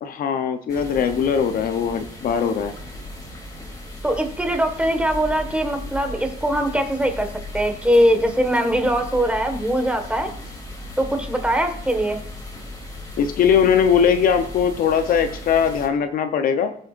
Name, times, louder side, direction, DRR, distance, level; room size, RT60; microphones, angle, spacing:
voice 1, 0.0-2.7 13.2-16.7, left 7 dB, 60° left, 8 dB, 0.8 m, -20 dB
sound 1, 0.7-15.9, left 1 dB, 20° left, 2.7 m, -36 dB
voice 2, 4.0-7.3 7.5-10.3 11.0-12.2, equal, 5° right, 5 dB, 1.6 m, -21 dB
19.0 x 6.7 x 2.5 m, 0.62 s
cardioid pair, 110°, 17 cm